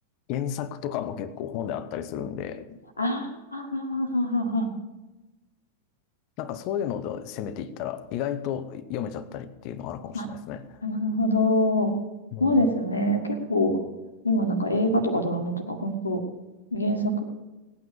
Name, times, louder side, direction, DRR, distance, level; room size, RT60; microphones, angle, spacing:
voice 1, 0.3-2.8 6.4-10.8 12.3-12.7, left 9 dB, 40° left, 14 dB, 1.0 m, -33 dB
voice 2, 3.0-4.7 10.1-10.2 10.8-11.9 12.4-13.8 14.2-16.2 16.7-17.2, left 1 dB, 75° left, 6 dB, 1.8 m, -25 dB
18.5 x 9.4 x 6.9 m, 1.1 s
figure-of-eight pair, 90°, 0 cm